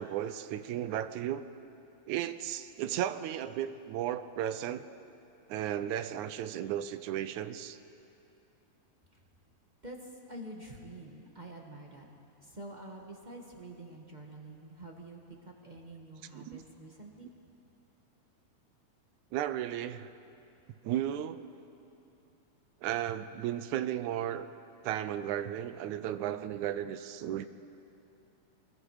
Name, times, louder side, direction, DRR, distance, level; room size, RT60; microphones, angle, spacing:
voice 1, 0.0-1.5 2.1-4.9 5.5-7.8 16.3-16.6 19.3-20.1 20.8-21.5 22.8-24.5 24.8-27.5, right 11 dB, 80° right, 12 dB, 2.1 m, -34 dB
voice 2, 9.8-12.1 12.4-15.2 15.4-17.3, right 1 dB, 25° right, 0 dB, 0.9 m, -47 dB
25.5 x 21.0 x 4.9 m, 2.8 s
omnidirectional pair, 3.4 m